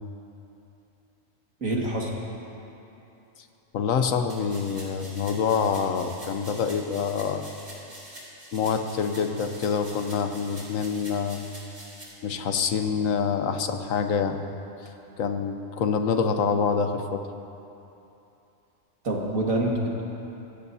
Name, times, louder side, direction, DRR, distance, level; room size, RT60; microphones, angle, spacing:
voice 1, 1.6-2.1 19.0-20.0, right 1 dB, 85° right, -2 dB, 2.3 m, -26 dB
voice 2, 3.7-7.5 8.5-11.4 12.2-14.4 15.2-17.2, left 6 dB, 80° left, 7 dB, 1.2 m, -26 dB
sound 1, 4.3-12.0, right 1 dB, 35° right, 3.0 m, -45 dB
24.5 x 15.5 x 2.8 m, 2.9 s
omnidirectional pair, 1.4 m